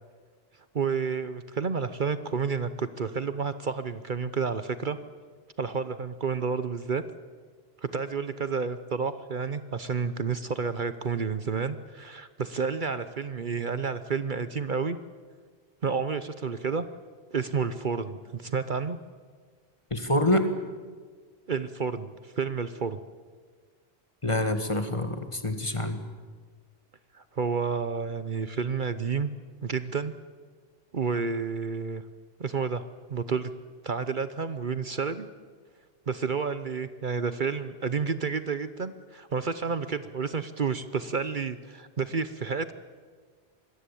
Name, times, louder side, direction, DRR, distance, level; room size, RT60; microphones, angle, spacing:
voice 1, 0.7-5.0 5.6-7.0 7.8-15.0 15.8-16.8 17.3-19.0 21.5-23.0 27.1-29.3 29.6-30.1 30.9-32.0 32.4-33.5 33.8-35.3 36.1-42.7, right 5 dB, 50° right, 12 dB, 1.0 m, -30 dB
voice 2, 19.9-20.5 24.2-26.0, left 1 dB, 30° left, 8 dB, 1.9 m, -26 dB
26.0 x 21.0 x 8.5 m, 1.5 s
omnidirectional pair, 1.1 m